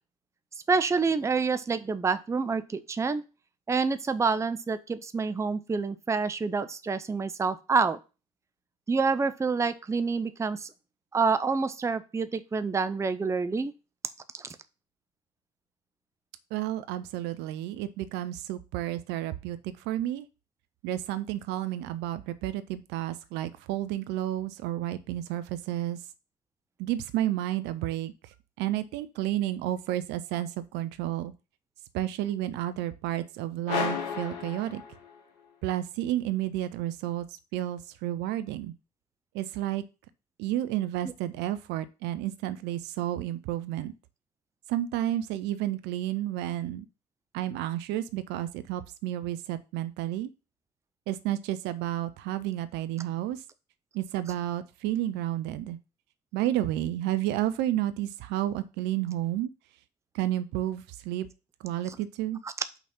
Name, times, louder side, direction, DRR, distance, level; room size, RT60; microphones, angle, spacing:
voice 1, 0.7-3.2 3.7-8.0 8.9-10.7 11.1-13.7 14.3-14.5 41.0-41.1 54.3-54.4 61.8-62.0 62.4-62.5, right 4 dB, 15° right, 12 dB, 0.6 m, -27 dB
voice 2, 16.5-20.3 20.8-26.0 26.8-31.3 31.9-34.8 35.6-37.3 37.5-38.7 39.3-39.8 40.4-43.9 44.7-46.9 47.3-50.3 51.1-53.4 53.9-55.8 56.3-59.5 60.1-61.3 61.6-62.4, right 13 dB, 55° right, 14 dB, 0.6 m, -31 dB
sound 1, 33.7-35.4, left 6 dB, 65° left, 1.4 m, -33 dB
5.8 x 4.2 x 5.7 m, 0.31 s
figure-of-eight pair, 60°, 21 cm